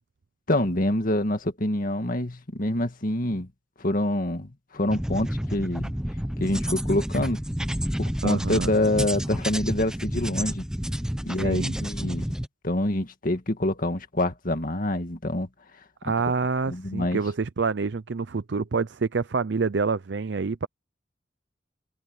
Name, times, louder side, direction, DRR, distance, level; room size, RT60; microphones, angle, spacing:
voice 1, 0.5-3.5 3.8-5.9 6.4-7.4 8.0-10.6 11.3-12.3 12.6-15.5 16.7-17.2, left 1 dB, 50° left, 2.0 m, -26 dB
sound 1, 4.9-12.5, equal, 5° right, 0.9 m, -30 dB
voice 2, 8.2-8.7 11.4-11.7 16.0-20.7, right 4 dB, 70° right, 0.6 m, -27 dB
head